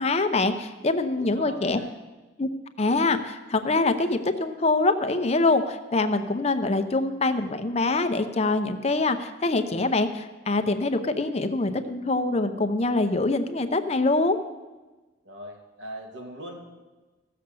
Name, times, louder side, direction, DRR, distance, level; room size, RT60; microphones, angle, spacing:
voice 1, 0.0-1.8 2.4-2.5 2.8-14.4, left 2 dB, 35° left, 9 dB, 0.7 m, -24 dB
voice 2, 1.2-2.0 15.2-16.6, equal, 80° right, 0 dB, 2.5 m, -40 dB
15.5 x 6.8 x 6.9 m, 1.2 s
head